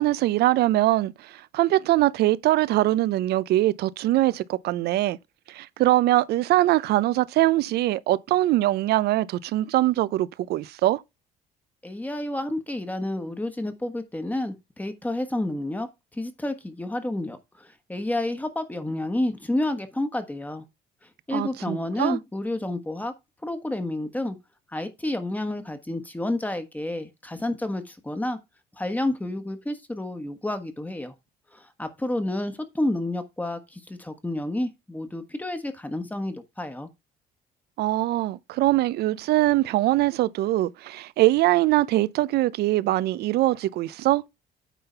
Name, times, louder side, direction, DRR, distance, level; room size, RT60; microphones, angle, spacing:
voice 1, 0.0-5.2 5.5-11.0 21.3-22.2 37.8-44.2, right 16 dB, 70° right, 0.6 m, -22 dB
voice 2, 11.8-15.9 16.1-20.6 21.3-23.1 23.4-24.4 24.7-28.4 28.8-31.1 31.5-36.9, left 1 dB, 10° left, 1.3 m, -30 dB
9.1 x 3.9 x 5.6 m
cardioid pair, 110°, 17 cm